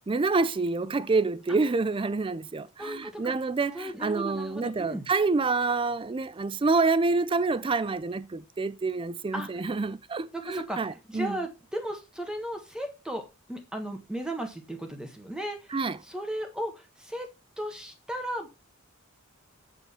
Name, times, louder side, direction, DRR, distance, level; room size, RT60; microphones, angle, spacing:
voice 1, 0.1-11.4 15.7-16.0, right 3 dB, 25° right, 0.4 m, -27 dB
voice 2, 2.8-3.4 3.7-5.1 9.3-9.5 10.3-17.3 17.6-18.5, right 1 dB, 5° right, 1.4 m, -36 dB
7.7 x 7.2 x 4.3 m
head